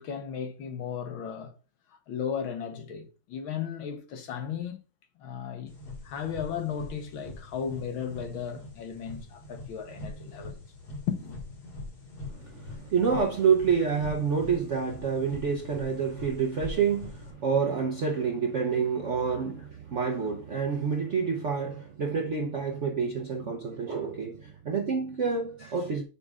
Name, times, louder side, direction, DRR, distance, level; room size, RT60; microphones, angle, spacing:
voice 1, 0.0-1.5 1.9-4.8 5.2-5.7 6.0-10.6 11.1-11.4 19.2-19.4 23.4-23.5, left 7 dB, 75° left, 1.8 m, -35 dB
sound 1, 5.7-17.3, left 2 dB, 50° left, 2.4 m, -43 dB
voice 2, 12.3-26.0, right 6 dB, 60° right, 0.7 m, -28 dB
10.0 x 5.5 x 2.4 m
omnidirectional pair, 2.2 m